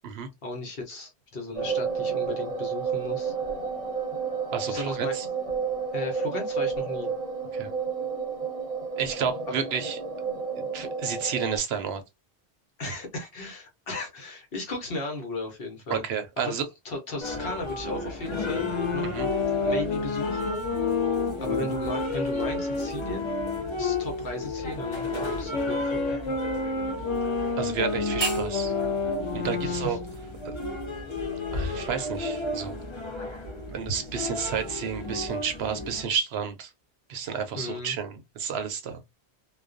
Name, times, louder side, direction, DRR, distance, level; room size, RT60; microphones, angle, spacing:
voice 1, 0.4-3.3 4.7-5.2 5.9-7.1 9.5-9.6 12.8-16.0 16.4-16.5 16.8-19.1 19.6-20.5 21.4-23.2 23.8-26.4 29.6-30.0 37.5-38.0, left 2 dB, 60° left, 1.0 m, -36 dB
sound 1, 1.5-11.6, right 5 dB, 40° right, 0.7 m, -31 dB
voice 2, 4.5-5.3 7.5-7.7 9.0-10.0 10.6-12.0 15.9-16.7 19.0-19.3 27.6-28.7 29.3-30.0 30.4-30.5 31.5-32.8 33.7-36.7 37.1-39.0, right 7 dB, 75° right, 0.8 m, -31 dB
sound 2, 17.2-36.0, left 2 dB, 35° left, 0.5 m, -33 dB
sound 3, 18.4-24.1 24.7-30.1, left 4 dB, 85° left, 0.9 m, -30 dB
2.3 x 2.2 x 2.4 m
omnidirectional pair, 1.1 m